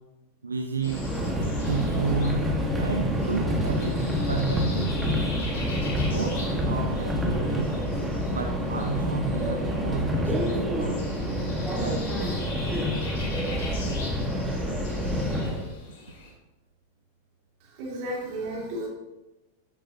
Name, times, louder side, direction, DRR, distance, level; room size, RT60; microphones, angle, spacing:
voice 1, 0.4-1.2 1.7-5.0 6.0-7.7 8.3-11.3 11.8-12.1 14.7-14.8, right 4 dB, 75° right, 4 dB, 0.7 m, -32 dB
sound 1, 0.8-16.3, left 2 dB, 55° left, 2.8 m, -43 dB
Subway metro underground, 0.8-15.7, equal, 10° right, 1.5 m, -27 dB
voice 2, 17.6-18.9, right 1 dB, 45° right, -1 dB, 2.3 m, -33 dB
13.0 x 7.5 x 2.8 m, 1.0 s
figure-of-eight pair, 90°, 0 cm